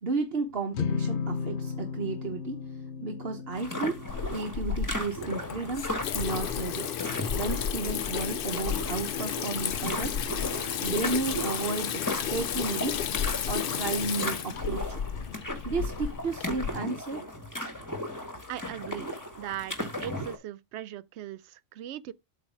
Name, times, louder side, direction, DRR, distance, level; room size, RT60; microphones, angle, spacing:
voice 1, 0.0-6.9 7.3-10.2 10.8-13.1 13.5-15.0 15.6-17.2, right 3 dB, 60° right, 1.3 m, -33 dB
sound 1, 0.7-7.2, left 6 dB, 80° left, 1.0 m, -36 dB
sound 2, 3.5-20.4, left 1 dB, 15° left, 1.8 m, -37 dB
Water tap faucet / Sink (filling or washing), 4.1-16.7, left 8 dB, 60° left, 0.8 m, -32 dB
voice 2, 18.5-19.8 20.0-22.1, right 11 dB, 80° right, 0.9 m, -39 dB
8.2 x 3.2 x 5.9 m
omnidirectional pair, 1.1 m